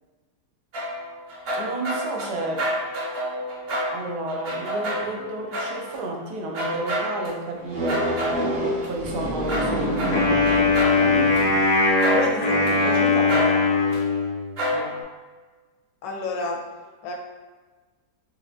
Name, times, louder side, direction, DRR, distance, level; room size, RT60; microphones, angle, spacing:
sound 1, 0.7-6.0 6.5-7.3 7.9-8.9 9.5-11.4 12.0-12.7 13.3-14.0 14.6-15.0, equal, 50° right, 0.8 m, -29 dB
voice 1, 1.5-2.7 3.9-8.2 8.8-11.5 12.4-13.5 14.7-14.9, right 2 dB, 80° right, 1 dB, 1.2 m, -32 dB
sound 2, 7.7-11.7, right 1 dB, 65° right, 0.4 m, -28 dB
Wind instrument woodwind instrument, 10.1-14.5, left 3 dB, 55° left, 0.4 m, -20 dB
voice 2, 12.1-13.0 16.0-16.6 17.0-17.1, left 3 dB, 75° left, 0 dB, 1.0 m, -30 dB
4.4 x 2.8 x 2.6 m, 1.3 s
omnidirectional pair, 1.7 m